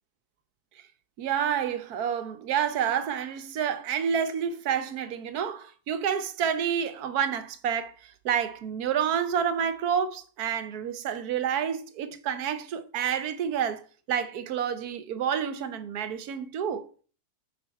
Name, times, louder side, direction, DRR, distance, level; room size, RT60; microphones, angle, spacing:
voice 1, 1.2-16.9, right 8 dB, 75° right, 1.2 m, -29 dB
7.6 x 4.7 x 4.6 m
omnidirectional pair, 1.7 m